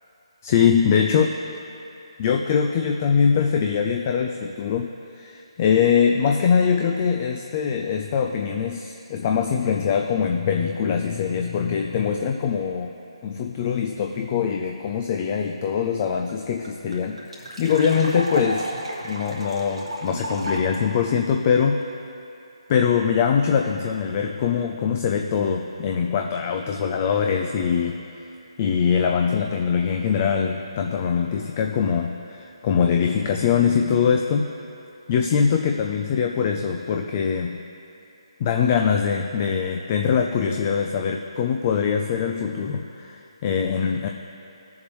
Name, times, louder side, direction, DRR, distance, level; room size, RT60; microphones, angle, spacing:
voice 1, 0.4-1.3 2.2-12.9 13.2-18.7 19.0-21.8 22.7-28.0 28.6-34.5 35.1-37.6 38.4-44.1, left 7 dB, 30° left, 3 dB, 0.4 m, -22 dB
sound 1, 16.0-16.1 16.3-16.4 16.6-20.8, right 1 dB, 90° right, 1.8 m, -32 dB
17.5 x 7.1 x 3.2 m, 2.8 s
figure-of-eight pair, 155°, 3 cm